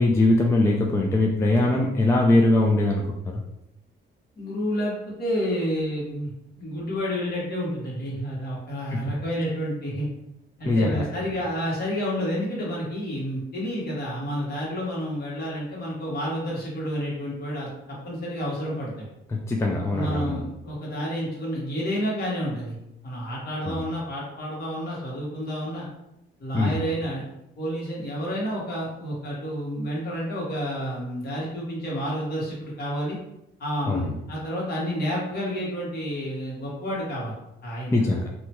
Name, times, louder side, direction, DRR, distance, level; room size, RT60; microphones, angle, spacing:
voice 1, 0.0-3.1 8.9-9.0 10.6-11.0 19.3-20.5 23.7-23.9 26.5-26.8 33.9-34.2 37.9-38.3, left 2 dB, 15° left, 0 dB, 0.4 m, -21 dB
voice 2, 4.4-4.9 5.2-6.3 6.6-10.1 10.6-19.0 19.7-22.7 23.0-25.9 26.4-27.2 27.6-33.2 33.6-37.3 37.6-38.2, equal, 50° left, -5 dB, 1.4 m, -30 dB
2.8 x 2.2 x 2.9 m, 0.84 s
cardioid pair, 90°, 20 cm